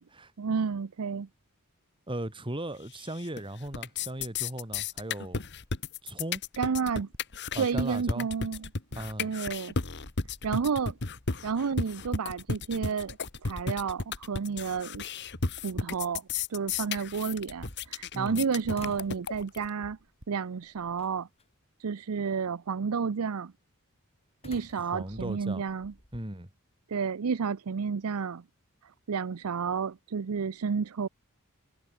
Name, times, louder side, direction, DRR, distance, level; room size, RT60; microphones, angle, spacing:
voice 1, 0.4-1.3 6.6-7.1 7.6-8.7 9.2-9.7 10.4-11.0 11.4-13.2 13.4-15.0 15.6-16.2 16.5-20.0 20.3-21.3 21.8-23.5 24.4-25.9 26.9-28.4 29.1-31.1, right 5 dB, 75° right, 0.5 m, -31 dB
voice 2, 2.1-5.4 6.0-6.4 7.5-8.3 9.0-9.3 18.1-18.4 24.8-25.6 26.1-26.5, right 1 dB, 20° right, 2.5 m, -37 dB
sound 1, 2.9-3.4 3.7-19.7, left 4 dB, 50° left, 1.8 m, -34 dB
sound 2, 6.4-6.6 7.0-7.8 8.1-8.3 9.0-9.2 10.2-10.5 10.9-11.1 11.4-11.8 12.3-12.4 12.7-12.9 13.8-13.9 14.5-14.7 15.0-15.2 15.9-16.1 16.7-17.8 18.2-19.6 20.0-20.3, equal, 60° right, 6.7 m, -60 dB
sound 3, 10.2-11.2 11.6-11.7 14.4-14.5 15.0-15.9 17.3-18.4 18.7-19.3 19.8-20.2 21.0-21.4 24.4-26.3, left 1 dB, 25° left, 3.9 m, -50 dB
head